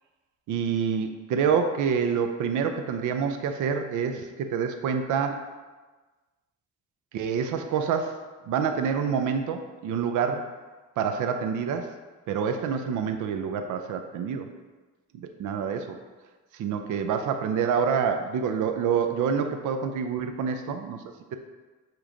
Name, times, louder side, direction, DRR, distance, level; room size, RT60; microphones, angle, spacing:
voice 1, 0.5-5.4 7.1-8.2 8.5-10.4 11.0-11.9 12.3-14.5 15.1-16.0 16.5-21.0, right 6 dB, 80° right, 6 dB, 0.6 m, -27 dB
7.4 x 3.1 x 5.0 m, 1.3 s
cardioid pair, 90°, 30 cm